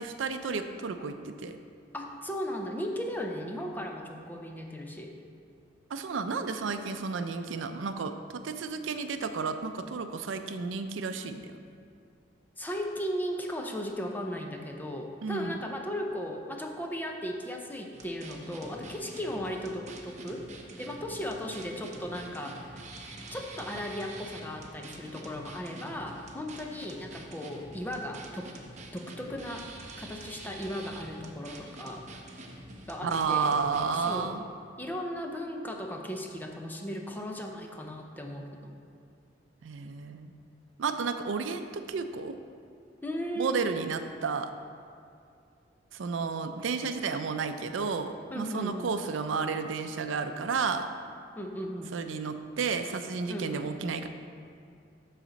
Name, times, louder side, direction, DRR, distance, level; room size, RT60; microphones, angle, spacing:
voice 1, 0.0-1.6 5.9-8.1 8.4-11.6 15.2-15.5 33.0-34.4 39.6-40.3 40.8-42.3 43.4-44.5 45.9-50.9 51.9-54.1, right 5 dB, 85° right, 8 dB, 0.5 m, -32 dB
voice 2, 1.9-5.1 12.6-20.5 20.8-22.8 23.3-28.5 28.9-29.7 30.0-32.2 32.9-33.5 33.9-34.4 34.8-38.8 43.0-43.6 48.3-48.9 51.4-51.9 53.3-53.7, equal, 10° left, 2 dB, 0.6 m, -36 dB
sound 1, 17.9-34.2, right 2 dB, 40° right, 0.8 m, -46 dB
12.0 x 4.2 x 4.0 m, 2.4 s
head